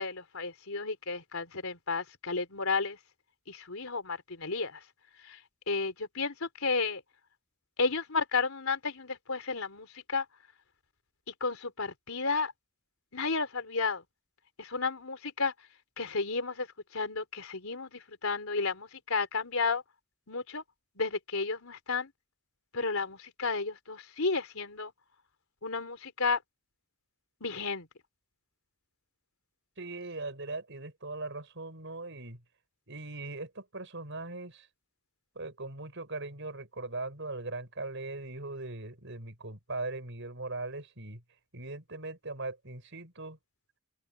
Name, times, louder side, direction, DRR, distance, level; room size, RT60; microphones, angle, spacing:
voice 1, 0.0-3.0 3.5-4.8 5.2-5.4 5.7-7.0 7.8-10.3 11.3-12.5 13.1-14.0 14.6-15.5 16.0-16.7 16.9-19.8 20.3-20.6 21.0-22.1 22.7-24.9 25.6-26.4 27.4-27.9, left 4 dB, 80° left, 3.7 m, -32 dB
voice 2, 29.8-32.4 32.9-34.7 35.3-41.2 41.5-43.4, right 2 dB, 60° right, 6.5 m, -40 dB
open air
head